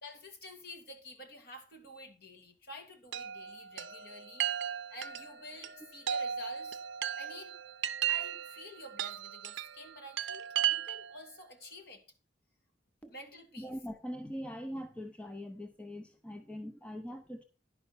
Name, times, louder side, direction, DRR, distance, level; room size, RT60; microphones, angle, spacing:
voice 1, 0.0-4.5 4.9-6.8 7.2-7.5 8.1-12.0 13.1-13.8, left 1 dB, 50° left, 4 dB, 2.1 m, -49 dB
Chime, 3.1-11.2, right 10 dB, 70° right, 0.6 m, -36 dB
voice 2, 13.6-17.4, equal, 5° left, 7 dB, 0.6 m, -42 dB
11.0 x 5.6 x 5.8 m, 0.35 s
head